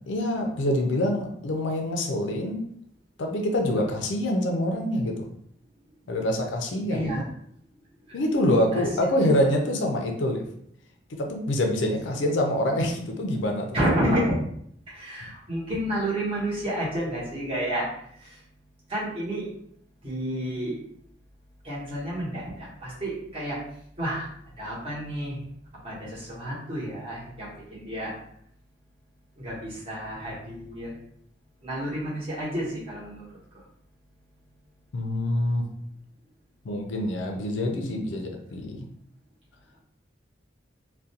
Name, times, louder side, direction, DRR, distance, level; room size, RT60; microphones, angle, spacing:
voice 1, 0.1-2.6 3.2-5.3 6.1-7.2 8.1-10.5 11.2-13.7 34.9-35.6 36.6-38.9, left 1 dB, 75° left, 3 dB, 0.4 m, -26 dB
voice 2, 6.9-7.2 8.1-8.2 8.7-9.1 13.7-14.4 14.9-17.9 18.2-18.4 18.9-19.5 20.0-20.8 21.6-23.6 24.0-24.3 24.6-25.4 25.8-28.1 29.4-30.9 31.6-33.3, right 1 dB, 30° right, -7 dB, 0.9 m, -30 dB
2.4 x 2.1 x 2.7 m, 0.68 s
head